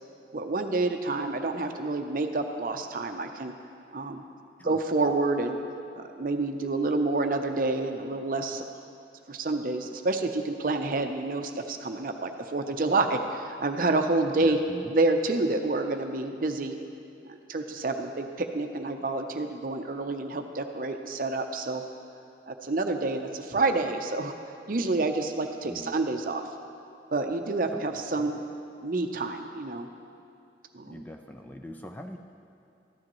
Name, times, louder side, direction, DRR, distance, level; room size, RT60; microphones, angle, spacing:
voice 1, 0.3-3.5 3.9-4.2 4.6-5.6 6.0-8.6 9.3-14.6 14.9-16.7 17.2-21.8 22.5-24.3 24.7-26.5 27.1-28.4 28.8-29.9 30.7-30.9, right 2 dB, 50° right, 5 dB, 0.6 m, -28 dB
voice 2, 4.6-5.1 14.4-14.9 25.7-26.0 27.7-27.8 28.1-28.4 30.9-32.2, equal, 10° left, 4 dB, 0.3 m, -42 dB
13.5 x 10.0 x 3.0 m, 2.6 s
head